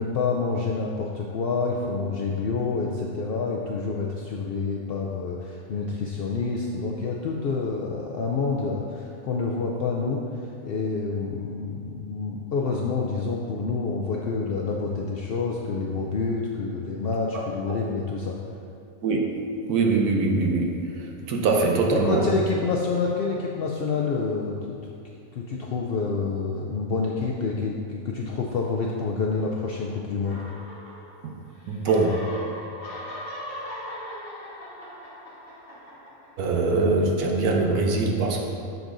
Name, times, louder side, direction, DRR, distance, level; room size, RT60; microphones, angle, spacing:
voice 1, 0.0-10.2 10.6-18.4 21.9-24.8 25.3-30.4, left 4 dB, 75° left, -2 dB, 0.5 m, -28 dB
voice 2, 19.0-20.7 21.3-22.2 31.7-32.1 36.4-38.5, right 3 dB, 80° right, 1 dB, 1.3 m, -23 dB
sound 1, 30.2-31.4 31.6-36.6, equal, 40° left, 1.6 m, -39 dB
7.9 x 7.1 x 2.6 m, 2.4 s
omnidirectional pair, 1.6 m